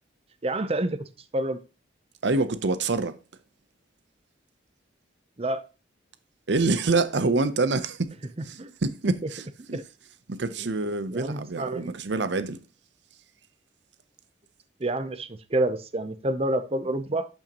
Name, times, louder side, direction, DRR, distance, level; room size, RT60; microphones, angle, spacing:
voice 1, 0.4-1.6 5.4-5.6 8.6-8.7 9.7-9.8 10.6-10.7 11.1-12.0 14.8-17.3, right 1 dB, 30° right, 0.7 m, -28 dB
voice 2, 2.2-3.2 6.5-8.1 8.4-9.8 10.3-12.6, right 3 dB, 65° right, 0.7 m, -26 dB
12.0 x 5.6 x 3.0 m
head